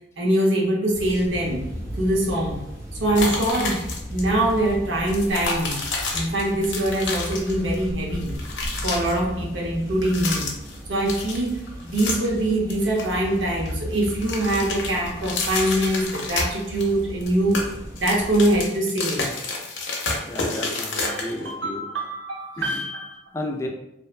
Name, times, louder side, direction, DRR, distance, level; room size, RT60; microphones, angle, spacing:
voice 1, 0.2-1.6 2.0-2.6 3.0-3.8 4.1-5.8 6.1-8.3 8.8-10.4 10.9-17.6 18.0-19.3 21.0-23.2, right 1 dB, 90° right, -2 dB, 0.7 m, -23 dB
sound 1, 0.9-18.7, equal, 15° right, 0.7 m, -36 dB
sound 2, 3.1-4.2 4.5-4.6 5.0-7.8 8.1-9.1 9.9-10.8 11.1-12.4 12.7-13.7 14.0-16.9 17.2-21.5, left 3 dB, 80° left, 0.5 m, -30 dB
voice 2, 20.3-21.9 22.6-22.8 23.3-23.7, left 1 dB, 15° left, 1 dB, 0.3 m, -32 dB
2.6 x 2.1 x 2.4 m, 0.86 s
head